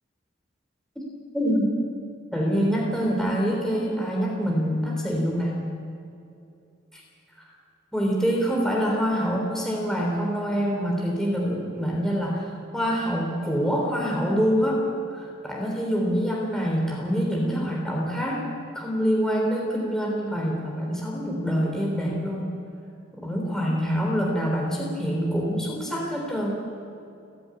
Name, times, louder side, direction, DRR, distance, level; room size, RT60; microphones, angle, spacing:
voice 1, 1.3-1.7 2.3-5.6 7.9-12.4 12.7-14.8 15.1-18.5 18.7-22.5 23.2-26.5, equal, 5° left, -2 dB, 3.4 m, -25 dB
30.0 x 11.0 x 9.8 m, 2.6 s
head